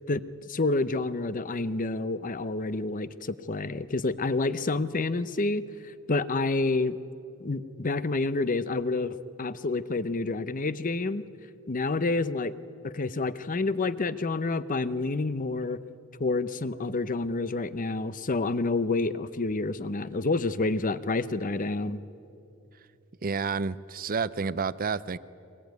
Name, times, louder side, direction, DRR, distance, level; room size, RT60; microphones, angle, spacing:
voice 1, 0.1-5.6 6.1-7.0 7.4-11.2 11.7-12.5 12.8-15.8 16.2-22.0, left 3 dB, 40° left, 14 dB, 0.7 m, -28 dB
voice 2, 23.2-25.2, right 5 dB, 40° right, 17 dB, 0.6 m, -30 dB
23.5 x 21.5 x 9.4 m, 2.7 s
head